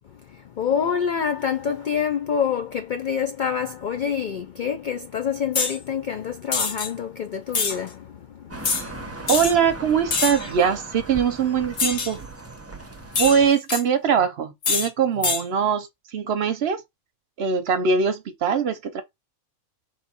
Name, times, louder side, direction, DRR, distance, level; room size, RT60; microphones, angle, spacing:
voice 1, 0.0-9.3, left 7 dB, 65° left, 0.4 m, -27 dB
sound 1, 5.5-5.8 6.5-6.9 7.5-7.8 8.6-8.8 9.3-9.5 10.1-10.5 11.8-12.1 13.1-13.8 14.6-14.9 15.2-15.4, left 5 dB, 50° left, 1.0 m, -24 dB
sound 2, 8.5-13.5, right 3 dB, 15° right, 0.6 m, -38 dB
voice 2, 9.3-12.2 13.2-16.8 17.4-19.0, right 7 dB, 60° right, 0.8 m, -22 dB
3.6 x 3.1 x 4.3 m
omnidirectional pair, 1.4 m